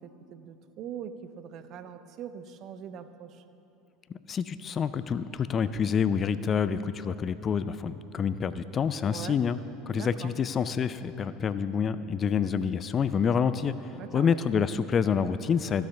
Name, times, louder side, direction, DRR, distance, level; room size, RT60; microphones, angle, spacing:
voice 1, 0.0-3.4 9.1-9.4 9.9-10.3 13.9-14.4, right 8 dB, 50° right, 11 dB, 0.6 m, -42 dB
voice 2, 4.3-9.6 9.9-13.7 14.1-15.8, left 7 dB, 35° left, 14 dB, 0.4 m, -27 dB
14.5 x 6.5 x 5.8 m, 3.0 s
figure-of-eight pair, 75°, 0 cm